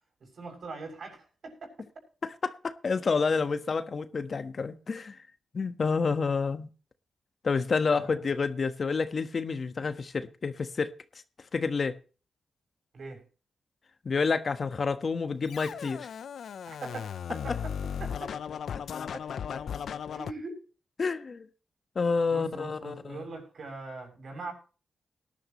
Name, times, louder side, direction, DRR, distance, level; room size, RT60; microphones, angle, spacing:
voice 1, 0.2-1.7 7.9-8.2 12.9-13.2 16.7-18.4 19.1-19.2 20.1-20.6 22.3-24.5, right 3 dB, 60° right, 7.1 m, -41 dB
voice 2, 2.4-5.2 5.5-6.7 7.4-11.0 11.5-12.0 14.0-16.1 21.0-21.5 21.9-23.2, left 4 dB, 50° left, 1.3 m, -29 dB
Scratching (performance technique), 15.5-20.3, left 7 dB, 80° left, 0.7 m, -36 dB
19.0 x 11.5 x 3.1 m
cardioid pair, 85°, 0 cm